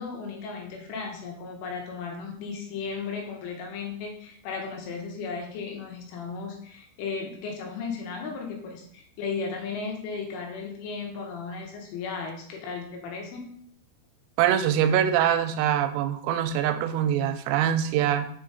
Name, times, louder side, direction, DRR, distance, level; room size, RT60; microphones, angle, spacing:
voice 1, 0.0-13.4, left 5 dB, 75° left, 2 dB, 3.3 m, -35 dB
voice 2, 14.4-18.3, right 10 dB, 90° right, 9 dB, 3.2 m, -24 dB
7.2 x 3.7 x 3.9 m, 0.64 s
omnidirectional pair, 5.9 m